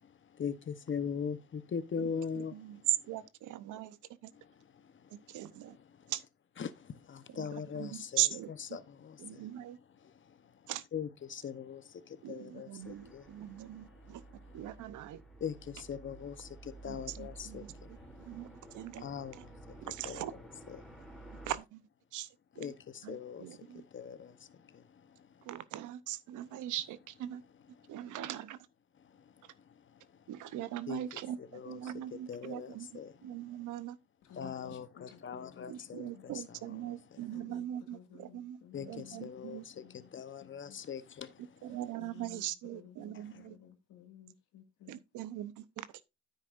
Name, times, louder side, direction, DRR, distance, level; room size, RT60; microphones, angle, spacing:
voice 1, 0.4-2.6 6.6-8.2 8.7-9.5 10.0-10.1 10.9-13.3 15.4-17.7 19.0-20.3 22.6-24.5 24.7-24.8 30.9-31.0 31.4-31.8 32.3-33.1 34.3-36.3 38.7-39.8 40.1-41.4, left 7 dB, 40° left, 0.9 m, -41 dB
voice 2, 2.0-4.0 4.2-4.3 5.3-5.8 6.1-6.2 7.3-8.8 9.2-9.8 10.7-10.8 12.2-14.2 14.5-15.2 16.8-18.5 18.7-19.0 19.3-19.4 19.8-20.3 21.4-21.8 22.1-22.3 22.6-22.7 23.0-23.8 25.4-27.4 27.9-28.6 30.3-34.0 35.7-38.6 38.9-39.6 41.6-43.6 44.9-46.0, right 13 dB, 80° right, 0.8 m, -40 dB
sound 1, 12.8-21.6, right 2 dB, 5° left, 2.9 m, -52 dB
voice 3, 34.2-36.2 37.2-39.5 39.8-40.8 42.0-45.0, left 10 dB, 90° left, 2.1 m, -56 dB
9.8 x 8.2 x 2.5 m
cardioid pair, 90°, 30 cm